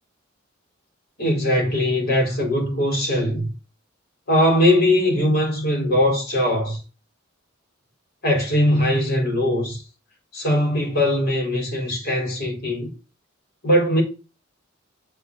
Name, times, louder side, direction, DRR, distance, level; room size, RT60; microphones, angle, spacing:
voice 1, 1.2-3.5 4.3-6.8 8.2-9.8 10.3-12.9 13.6-14.0, left 1 dB, 50° left, 4.0 m, -20 dB
7.0 x 4.1 x 6.6 m
head